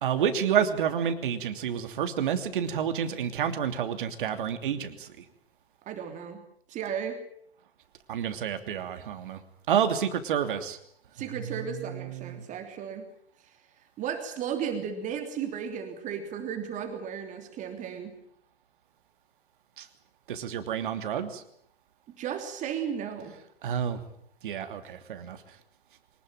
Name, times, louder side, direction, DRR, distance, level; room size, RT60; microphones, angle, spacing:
voice 1, 0.0-5.1 8.1-9.4 9.7-10.8 11.5-12.4 19.8-19.9 20.3-21.4 23.6-24.0 24.4-25.4, right 8 dB, 55° right, 9 dB, 3.1 m, -29 dB
voice 2, 5.9-6.4 6.7-7.2 11.1-13.0 14.0-18.1 22.1-23.3, right 8 dB, 25° right, 6 dB, 3.1 m, -34 dB
24.5 x 20.5 x 9.1 m, 0.67 s
figure-of-eight pair, 115°, 31 cm